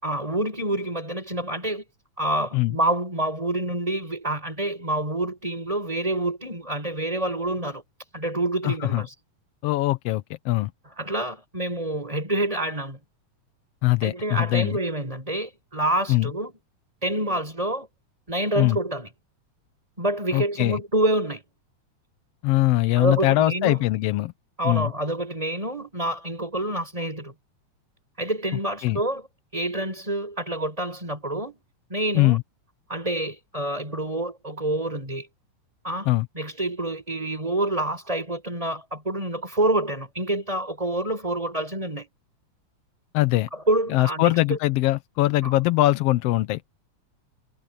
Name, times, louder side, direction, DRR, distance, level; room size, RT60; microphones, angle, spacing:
voice 1, 0.0-1.8 2.2-7.8 8.1-9.1 11.0-13.0 14.0-16.5 17.0-17.9 18.3-19.1 20.0-21.4 23.0-23.8 24.6-27.3 28.2-29.3 29.5-31.6 31.9-32.4 32.9-35.3 35.8-42.1 43.5-44.6 45.4-45.5, right 1 dB, 10° right, 7.2 m, -27 dB
voice 2, 8.6-9.0 9.6-10.7 13.8-14.8 16.1-16.3 18.6-18.8 20.3-20.8 22.4-24.3 24.6-24.9 28.8-29.0 32.1-32.4 36.1-36.3 43.1-43.5 43.9-46.6, left 17 dB, 75° left, 1.5 m, -22 dB
omnidirectional pair, 3.3 m